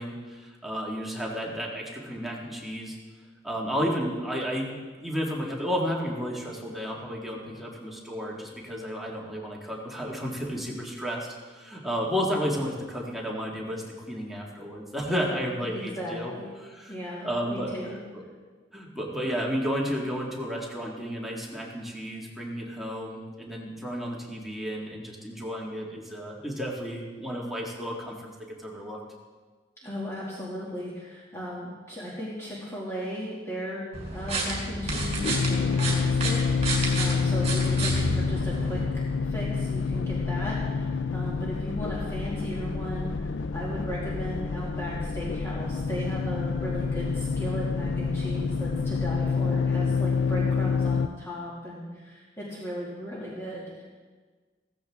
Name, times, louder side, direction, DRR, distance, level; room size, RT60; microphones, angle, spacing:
voice 1, 0.0-3.0 3.4-11.3 11.5-16.3 16.6-16.9 17.2-18.2 18.7-28.1 28.6-29.0, equal, ahead, -3 dB, 1.9 m, -32 dB
voice 2, 15.6-16.5 16.9-18.0 29.8-33.8 34.1-53.8, equal, 15° left, -7 dB, 2.3 m, -36 dB
sound 1, 33.9-38.8, right 2 dB, 35° right, 3.5 m, -31 dB
sound 2, 34.9-51.1, left 5 dB, 75° left, 0.5 m, -28 dB
16.0 x 15.0 x 3.6 m, 1.4 s
head